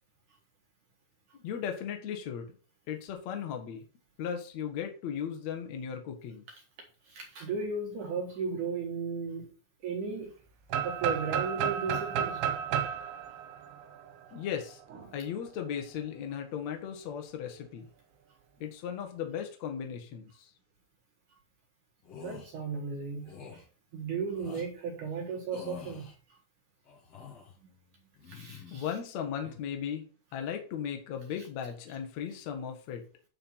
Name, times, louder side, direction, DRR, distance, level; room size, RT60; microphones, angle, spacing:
voice 1, 1.4-2.5 2.9-3.9 4.2-6.4 14.3-17.9 18.6-20.5 28.7-33.0, left 8 dB, 85° left, 1.5 m, -37 dB
voice 2, 7.0-9.5 9.8-10.3 10.8-12.4 14.9-15.1 22.2-23.6 23.9-26.1 28.3-28.8, right 5 dB, 60° right, 2.2 m, -35 dB
sound 1, 10.7-14.5, right 8 dB, 75° right, 3.4 m, -32 dB
sound 2, 22.0-22.5 23.2-23.6 24.3-24.7 25.5-26.1 26.8-27.6 28.1-28.8 29.2-29.6, left 6 dB, 45° left, 2.3 m, -47 dB
9.7 x 4.6 x 5.6 m
omnidirectional pair, 5.6 m